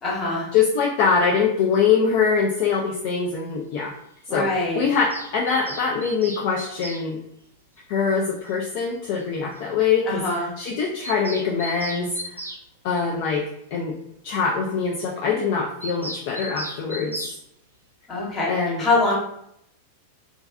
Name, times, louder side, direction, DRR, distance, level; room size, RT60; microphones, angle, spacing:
voice 1, 0.0-0.4 4.3-4.8 10.1-10.5 18.1-18.5 18.8-19.1, left 3 dB, 30° left, -4 dB, 1.0 m, -23 dB
voice 2, 0.5-3.9 4.3-7.2 7.9-12.4 12.8-13.9 14.2-17.4 18.5-18.8, left 5 dB, 50° left, -2 dB, 0.3 m, -23 dB
Bird vocalization bird call bird song, 4.9-7.0 8.5-8.6 8.8-8.9 9.2-9.3 9.6-9.7 9.9-10.0 10.2-10.4 10.6-12.6 15.8-17.4, right 1 dB, 80° right, 0.3 m, -36 dB
2.4 x 2.3 x 2.3 m, 0.74 s
figure-of-eight pair, 90°, 0 cm